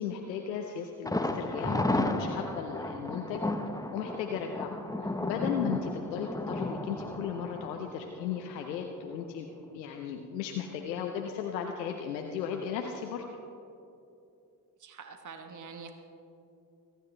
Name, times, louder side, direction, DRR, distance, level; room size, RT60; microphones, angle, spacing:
voice 1, 0.0-3.4 3.9-4.7 5.0-9.5 9.7-13.2, left 7 dB, 90° left, 3 dB, 0.7 m, -35 dB
Thunder, 1.1-8.8 9.1-9.2 9.6-9.7, left 1 dB, 5° left, 1.0 m, -33 dB
voice 2, 14.8-15.9, right 5 dB, 40° right, 5 dB, 1.3 m, -45 dB
24.0 x 10.0 x 3.3 m, 2.7 s
hypercardioid pair, 40°, 48 cm